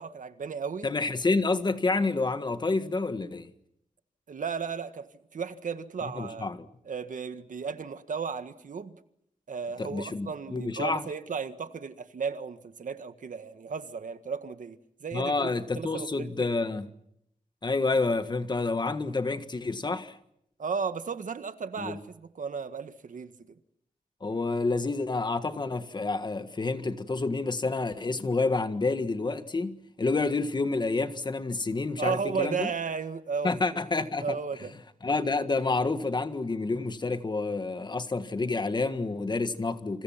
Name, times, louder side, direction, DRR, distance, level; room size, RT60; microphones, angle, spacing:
voice 1, 0.0-0.9 4.3-6.5 6.9-9.0 9.5-16.3 20.6-23.3 32.0-33.6 34.2-34.7, right 5 dB, 70° right, 1.7 m, -34 dB
voice 2, 0.8-3.5 6.1-6.7 9.8-11.0 15.1-16.9 17.6-20.2 21.8-22.0 24.2-32.7 33.4-34.4 35.0-40.0, left 3 dB, 30° left, 1.7 m, -29 dB
29.5 x 28.5 x 5.9 m
wide cardioid pair, 180°, 14 cm